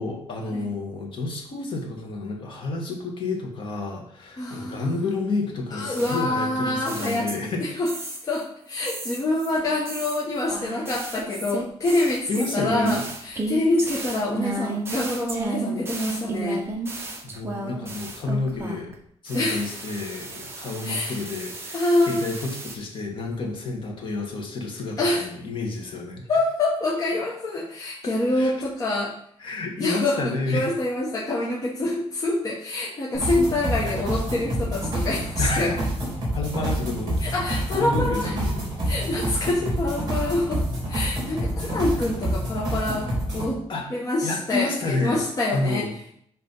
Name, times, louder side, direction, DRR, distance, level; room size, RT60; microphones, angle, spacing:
voice 1, 0.0-7.7 10.6-10.8 12.3-13.0 17.2-18.9 19.2-26.2 28.4-28.5 29.4-30.7 35.4-35.8 36.3-37.2 37.5-38.6 41.6-41.7 43.7-43.9 44.2-45.2 45.5-45.9, left 3 dB, 45° left, 1 dB, 1.5 m, -30 dB
voice 2, 4.4-5.0 5.7-7.3 7.6-16.6 19.3-19.7 20.8-21.2 21.7-22.4 25.0-25.3 26.3-29.1 29.8-35.7 37.2-38.3 38.8-43.6 43.9-45.9, left 2 dB, 30° left, -5 dB, 1.1 m, -26 dB
sound 1, 6.0-7.6 7.9-8.4 8.9-19.0 19.3-22.8, right 2 dB, 20° right, 0.9 m, -34 dB
sound 2, 33.1-43.5, right 1 dB, 35° right, 3.2 m, -27 dB
8.0 x 3.2 x 5.5 m, 0.67 s
wide cardioid pair, 180°, 11 cm